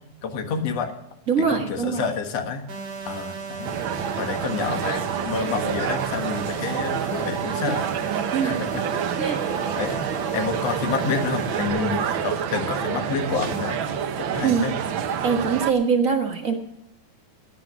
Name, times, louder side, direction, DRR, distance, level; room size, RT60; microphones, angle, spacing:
voice 1, 0.2-0.9 1.5-2.7 3.0-3.7 4.2-7.8 8.4-8.8 9.7-10.0 10.3-13.8 14.2-14.7, left 5 dB, 60° left, 6 dB, 2.5 m, -28 dB
voice 2, 1.3-2.0 7.7-7.8 8.3-8.6 9.2-9.4 14.4-14.7 15.2-16.5, right 6 dB, 40° right, 3 dB, 1.3 m, -23 dB
sound 1, 2.7-11.7, right 5 dB, 55° right, 3.5 m, -35 dB
sound 2, 3.6-15.7, right 8 dB, 90° right, 1.1 m, -28 dB
17.5 x 9.6 x 6.1 m, 0.86 s
omnidirectional pair, 3.6 m